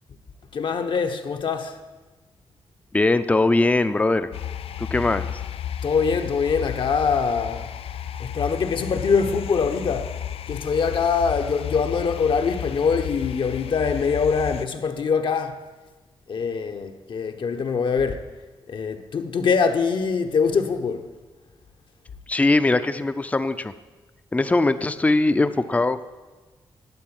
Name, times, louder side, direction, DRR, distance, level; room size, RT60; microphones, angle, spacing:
voice 1, 0.5-1.8 5.8-7.7 8.2-10.2 10.5-15.6 16.3-18.3 18.7-21.1, left 5 dB, 60° left, 1.1 m, -23 dB
voice 2, 2.9-4.3 4.8-5.4 22.3-23.7 24.3-26.0, left 2 dB, 15° left, 0.6 m, -21 dB
sound 1, 4.3-14.6, left 10 dB, 85° left, 0.5 m, -33 dB
12.0 x 9.0 x 8.9 m
wide cardioid pair, 150°, 9 cm